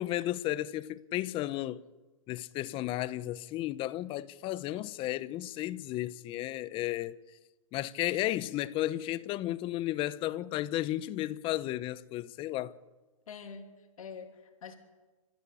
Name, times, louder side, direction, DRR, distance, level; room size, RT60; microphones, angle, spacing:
voice 1, 0.0-1.8 2.3-7.2 7.7-12.8, left 15 dB, 30° left, 0.9 m, -33 dB
voice 2, 13.3-14.8, left 6 dB, 80° left, 2.9 m, -46 dB
29.0 x 14.5 x 8.5 m
hypercardioid pair, 135°, 17 cm